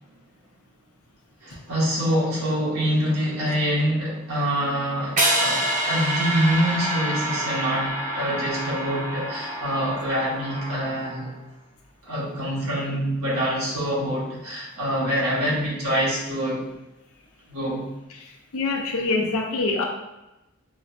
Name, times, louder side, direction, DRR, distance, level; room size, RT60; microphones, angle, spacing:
voice 1, 1.4-11.3 12.0-16.7 17.5-17.9, equal, 80° right, -7 dB, 1.4 m, -25 dB
sound 1, 5.2-11.3, right 1 dB, 35° right, 0.8 m, -27 dB
voice 2, 18.1-19.9, left 3 dB, 75° left, 0 dB, 0.7 m, -25 dB
4.8 x 2.2 x 2.6 m, 0.95 s
head